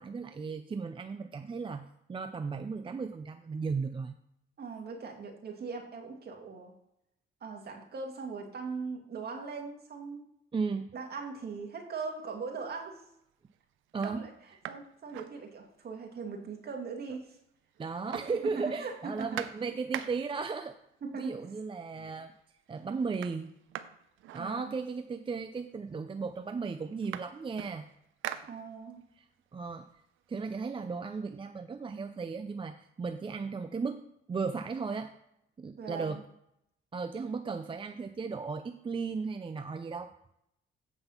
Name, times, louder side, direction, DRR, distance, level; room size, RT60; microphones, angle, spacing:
voice 1, 0.0-4.2 10.5-10.9 13.9-14.2 17.8-20.8 21.2-22.3 22.7-23.5 24.3-27.8 29.2-29.3 29.5-29.9 30.3-34.0 34.3-35.2 35.6-36.2 36.9-40.1, right 4 dB, 25° right, 8 dB, 0.5 m, -35 dB
voice 2, 4.6-6.7 7.4-10.2 10.9-13.0 14.0-14.3 14.7-17.3 18.4-19.4 21.0-21.4 24.4-24.7 28.5-29.0 35.8-36.2, right 4 dB, 55° right, 2 dB, 2.1 m, -40 dB
sound 1, 12.5-12.9 13.5-13.6 13.9-16.0 16.3-16.4 16.6-17.5 17.7-20.5 21.4-21.5 21.9-22.4 22.7-25.1 25.9-26.0 26.3-29.1 29.5-31.2, right 11 dB, 80° right, 0.6 m, -45 dB
8.0 x 5.4 x 5.7 m, 0.79 s
cardioid pair, 90°, 20 cm